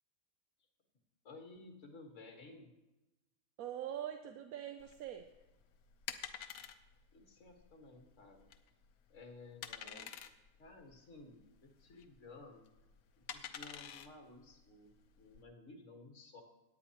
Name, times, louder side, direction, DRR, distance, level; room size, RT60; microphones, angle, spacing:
voice 1, 1.2-2.7 7.1-8.5 9.1-10.1 10.6-12.7 13.3-16.4, left 3 dB, 60° left, 3 dB, 1.9 m, -55 dB
voice 2, 3.6-5.3 9.8-10.1, right 10 dB, 80° right, 6 dB, 1.1 m, -44 dB
sound 1, 4.8-15.4, left 9 dB, 90° left, 1.2 m, -50 dB
17.0 x 9.8 x 2.9 m, 1.0 s
omnidirectional pair, 1.5 m